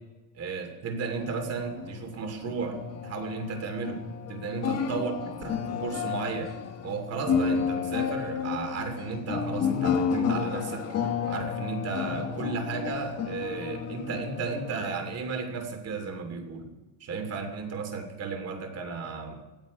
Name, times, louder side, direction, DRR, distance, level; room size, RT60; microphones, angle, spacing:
voice 1, 0.3-4.0 4.3-5.1 5.4-6.5 6.8-11.0 11.3-16.7 17.0-19.4, right 4 dB, 30° right, 6 dB, 2.8 m, -34 dB
sound 1, 1.0-15.7, left 7 dB, 35° left, 1.4 m, -32 dB
18.0 x 15.5 x 5.2 m, 1.2 s
cardioid pair, 160°, 47 cm